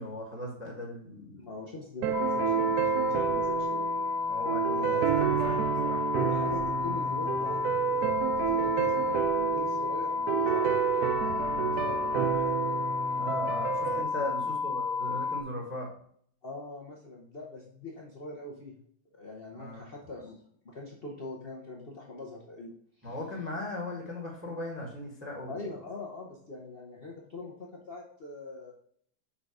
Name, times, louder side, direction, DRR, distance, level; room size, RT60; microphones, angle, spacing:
voice 1, 0.0-1.5 4.3-6.0 13.1-15.9 19.6-19.8 23.0-25.7, left 1 dB, 5° right, -1 dB, 1.2 m, -38 dB
voice 2, 1.3-3.9 4.7-5.7 6.1-12.8 13.8-14.5 16.4-18.7 19.1-23.1 25.5-28.7, left 2 dB, 50° left, -2 dB, 0.7 m, -43 dB
sound 1, 2.0-14.0, right 10 dB, 85° right, 0.8 m, -30 dB
sound 2, 2.1-15.4, left 5 dB, 75° left, 1.7 m, -31 dB
5.6 x 3.9 x 4.7 m, 0.62 s
omnidirectional pair, 2.1 m